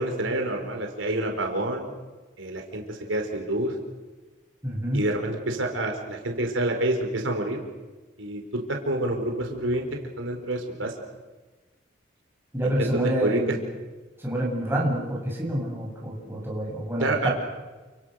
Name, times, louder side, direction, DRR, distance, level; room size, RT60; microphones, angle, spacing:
voice 1, 0.0-1.9 2.4-3.7 4.9-7.6 8.2-9.9 10.2-10.9 12.6-13.4 17.0-17.3, right 1 dB, 90° right, 3 dB, 4.7 m, -28 dB
voice 2, 4.6-5.0 12.5-13.6 14.2-17.3, right 1 dB, 10° right, -3 dB, 7.6 m, -27 dB
30.0 x 27.0 x 6.7 m, 1.3 s
head